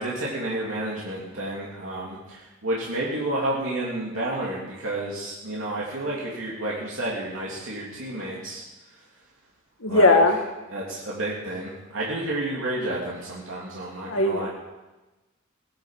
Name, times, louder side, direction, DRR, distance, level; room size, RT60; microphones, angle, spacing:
voice 1, 0.0-8.6 9.9-10.2 10.7-14.5, right 1 dB, 75° right, -5 dB, 2.9 m, -30 dB
voice 2, 9.8-10.4 14.1-14.5, left 2 dB, 85° left, 2 dB, 2.0 m, -18 dB
18.0 x 10.0 x 5.8 m, 1.1 s
head